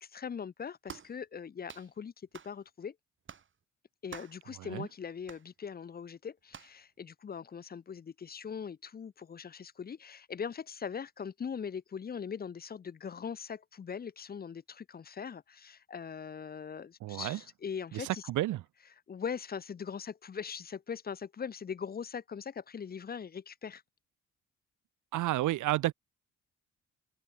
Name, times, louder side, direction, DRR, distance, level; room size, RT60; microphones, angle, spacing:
voice 1, 0.0-2.1 2.4-3.0 4.0-18.2 19.1-23.8, left 7 dB, 30° left, 0.7 m, -41 dB
sound 1, 0.9-1.2 1.7-1.9 2.3-2.6 3.3-3.5 4.1-4.4 5.3-5.5 6.5-6.8, right 7 dB, 40° right, 1.5 m, -48 dB
voice 2, 17.0-17.4 17.9-18.6 25.1-25.9, right 15 dB, 80° right, 1.0 m, -31 dB
cardioid pair, 90°, 30 cm